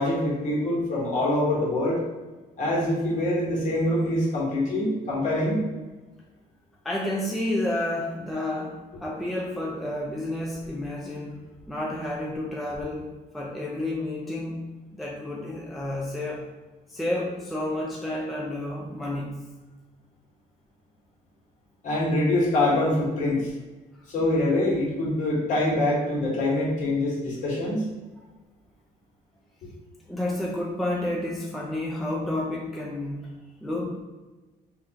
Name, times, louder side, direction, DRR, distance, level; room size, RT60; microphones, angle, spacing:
voice 1, 0.0-2.0 2.6-5.6 21.8-23.5 24.1-27.8, left 1 dB, 45° left, -4 dB, 1.3 m, -24 dB
voice 2, 6.8-14.6 14.9-16.5 16.9-19.4 30.1-33.3 33.6-34.0, left 1 dB, ahead, -3 dB, 0.4 m, -30 dB
3.4 x 2.3 x 2.8 m, 1.2 s
cardioid pair, 110°, 17 cm